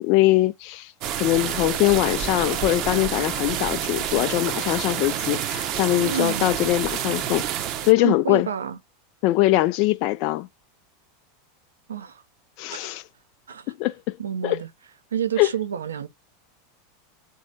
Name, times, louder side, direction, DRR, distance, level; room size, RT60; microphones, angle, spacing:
voice 1, 0.0-7.4 7.8-8.5 9.2-10.5 12.6-13.0 13.8-14.2 14.4-14.6 15.4-15.5, left 17 dB, 50° left, 0.3 m, -22 dB
sound 1, 1.0-7.9, right 10 dB, 45° right, 0.8 m, -28 dB
voice 2, 6.0-6.5 7.9-8.8 11.9-12.2 12.7-12.9 13.5-13.7 14.2-14.7 15.1-16.1, right 8 dB, 75° right, 0.7 m, -29 dB
4.0 x 2.7 x 4.8 m
figure-of-eight pair, 85°, 0 cm